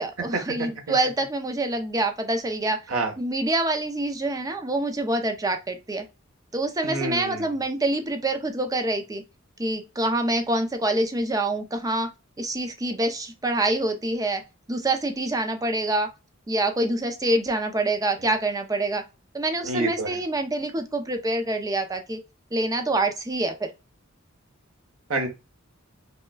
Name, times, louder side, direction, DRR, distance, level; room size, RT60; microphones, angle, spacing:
voice 1, 0.0-2.8 3.2-6.1 6.5-9.2 9.6-12.1 12.4-14.4 14.7-16.1 16.5-19.0 19.3-22.2 22.5-23.7, right 2 dB, 15° right, 0.5 m, -26 dB
voice 2, 6.8-7.5 19.6-20.2 25.1-25.3, right 2 dB, 80° right, 1.1 m, -27 dB
5.4 x 2.2 x 2.2 m
head